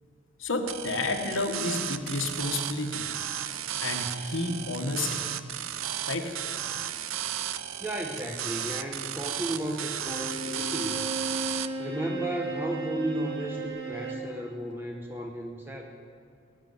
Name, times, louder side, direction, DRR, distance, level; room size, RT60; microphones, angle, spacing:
voice 1, 0.4-3.0 3.8-5.2 6.1-6.3, left 2 dB, 80° left, 3 dB, 1.5 m, -30 dB
sound 1, 0.7-11.7, right 10 dB, 90° right, 0.6 m, -34 dB
voice 2, 7.8-11.0 11.8-15.8, right 1 dB, 10° right, 1 dB, 0.9 m, -34 dB
Bowed string instrument, 10.0-14.3, right 3 dB, 50° right, 2.1 m, -35 dB
19.0 x 6.9 x 9.5 m, 2.3 s
head